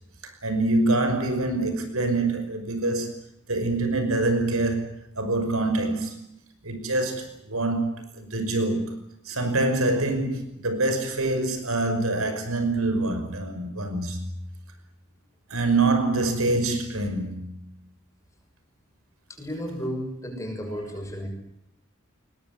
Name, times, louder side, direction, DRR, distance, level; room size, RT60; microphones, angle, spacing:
voice 1, 0.2-3.1 3.5-6.2 6.6-9.0 9.3-14.2 15.5-17.7 20.7-20.8, right 2 dB, 85° right, 5.6 m, -25 dB
voice 2, 19.3-21.3, equal, 15° left, 6.5 m, -33 dB
21.5 x 20.0 x 9.6 m
head